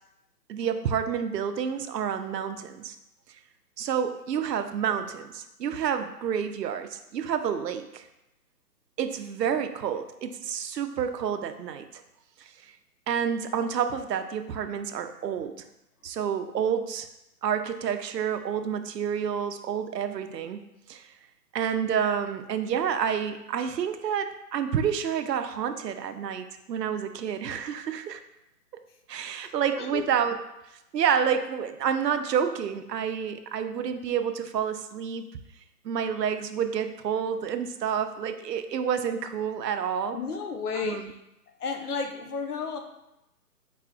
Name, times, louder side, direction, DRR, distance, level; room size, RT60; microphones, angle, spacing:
voice 1, 0.5-3.0 3.8-8.1 9.0-11.9 12.4-12.7 13.1-15.6 16.0-17.1 17.4-20.6 20.9-21.0 21.5-28.2 29.1-30.4 30.9-35.3 35.8-40.2 40.7-41.1, right 8 dB, 80° right, 9 dB, 0.6 m, -29 dB
voice 2, 29.7-30.1 40.1-41.2 41.6-42.8, left 5 dB, 65° left, 5 dB, 0.8 m, -32 dB
4.8 x 4.2 x 2.4 m, 0.90 s
hypercardioid pair, 160°, 48 cm